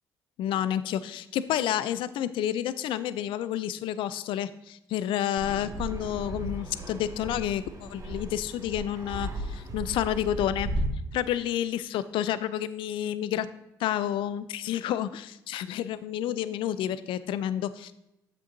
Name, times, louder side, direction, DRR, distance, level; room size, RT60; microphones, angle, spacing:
voice 1, 0.4-10.7 11.1-13.5 13.8-17.9, left 11 dB, 70° left, 15 dB, 0.4 m, -30 dB
Fixed-wing aircraft airplane, 5.4-10.9, right 1 dB, 40° right, 1.4 m, -35 dB
7.6 x 7.6 x 2.6 m, 0.87 s
hypercardioid pair, 50°, 9 cm